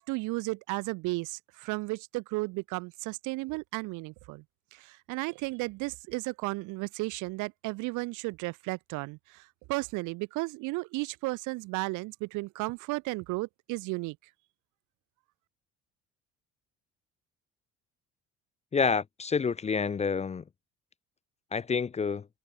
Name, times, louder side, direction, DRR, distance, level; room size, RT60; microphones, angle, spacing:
voice 1, 0.1-4.4 4.7-14.2, right 23 dB, 70° right, 0.6 m, -34 dB
voice 2, 18.7-20.4 21.5-22.3, left 5 dB, 20° left, 0.5 m, -28 dB
supercardioid pair, 70°, 31 cm